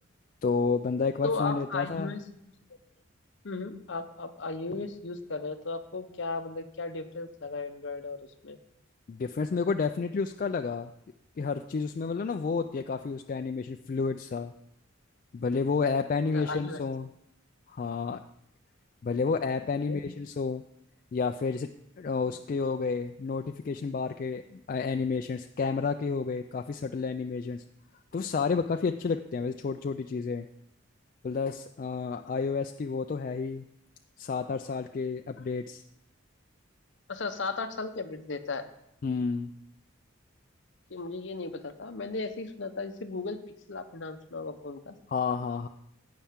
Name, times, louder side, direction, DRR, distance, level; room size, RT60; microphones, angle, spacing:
voice 1, 0.4-2.1 9.1-10.9 11.4-14.5 15.3-17.1 17.7-18.2 19.0-20.6 21.1-21.7 22.0-27.6 28.1-30.5 31.2-33.6 34.2-35.8 39.0-39.5 45.1-45.7, left 4 dB, 40° left, 7 dB, 0.3 m, -30 dB
voice 2, 1.2-2.2 3.4-8.2 8.4-8.6 16.3-16.8 19.8-20.0 22.3-22.4 37.1-38.6 40.9-43.4 43.7-44.9, left 3 dB, 60° left, 8 dB, 0.8 m, -35 dB
16.5 x 5.7 x 3.6 m, 0.80 s
head